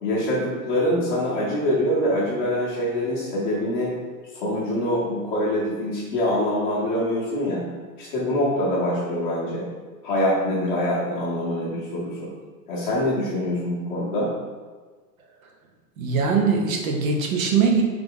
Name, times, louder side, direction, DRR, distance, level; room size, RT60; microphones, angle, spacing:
voice 1, 0.0-3.9 4.4-7.6 8.0-9.7 10.0-12.3 12.7-14.3, left 1 dB, 30° left, -8 dB, 0.7 m, -24 dB
voice 2, 16.0-17.8, right 5 dB, 55° right, 2 dB, 0.8 m, -21 dB
3.6 x 3.4 x 3.6 m, 1.4 s
supercardioid pair, 170°, 49 cm